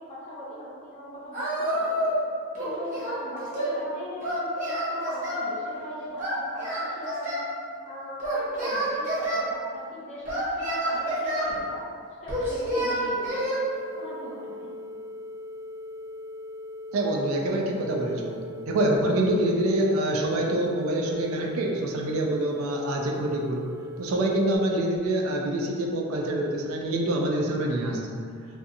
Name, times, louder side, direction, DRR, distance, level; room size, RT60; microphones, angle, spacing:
voice 1, 0.0-2.1 2.6-7.4 7.8-11.8 12.2-13.7 14.0-14.7, equal, 30° left, -10 dB, 0.8 m, -39 dB
Singing, 1.3-2.2 2.5-3.8 4.2-5.5 6.2-7.5 8.2-9.4 10.3-11.5 12.3-13.6, right 1 dB, 35° right, 0.7 m, -28 dB
sound 1, 13.1-24.6, left 2 dB, 5° right, 0.4 m, -40 dB
voice 2, 16.9-28.3, right 1 dB, 80° right, 0 dB, 0.4 m, -26 dB
2.6 x 2.4 x 2.5 m, 2.2 s
head